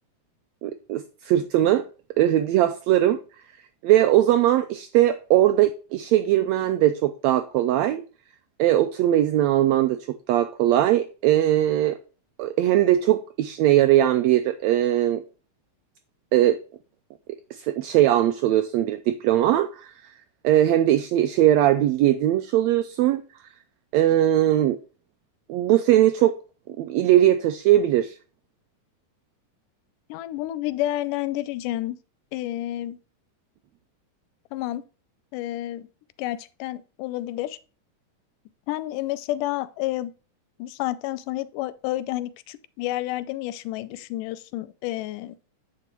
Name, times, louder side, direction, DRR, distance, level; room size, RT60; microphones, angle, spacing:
voice 1, 0.6-1.8 2.2-3.2 3.8-8.0 8.6-12.0 12.4-15.2 16.3-16.6 17.6-19.9 20.4-23.2 23.9-24.8 25.5-26.3 26.8-28.2, right 13 dB, 85° right, 1.5 m, -20 dB
voice 2, 30.1-32.0 32.3-33.0 34.5-34.8 35.3-35.9 36.2-37.6 38.7-40.1 40.6-45.4, left 15 dB, 90° left, 2.2 m, -30 dB
8.8 x 5.0 x 4.4 m
omnidirectional pair, 3.6 m